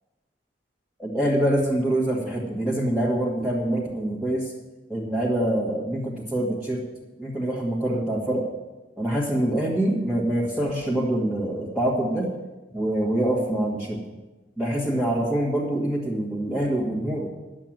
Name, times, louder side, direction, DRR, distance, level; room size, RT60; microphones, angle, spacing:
voice 1, 1.0-4.5 4.9-6.8 7.2-8.5 9.0-12.3 12.7-14.0 14.6-17.3, right 1 dB, ahead, -6 dB, 1.9 m, -25 dB
11.5 x 7.6 x 9.1 m, 1.1 s
head